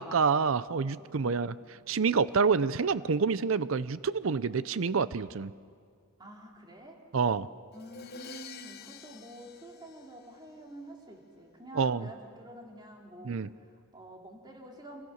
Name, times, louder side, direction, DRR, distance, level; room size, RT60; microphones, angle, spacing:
voice 1, 0.0-1.5 1.9-5.5 7.1-7.5 11.7-12.1 13.2-13.5, right 5 dB, 75° right, 16 dB, 0.6 m, -27 dB
voice 2, 6.2-7.0 7.7-15.0, right 1 dB, 20° right, 0 dB, 3.0 m, -48 dB
Crash cymbal, 7.7-10.7, left 6 dB, 50° left, 0.9 m, -48 dB
27.5 x 27.0 x 6.5 m, 2.1 s
head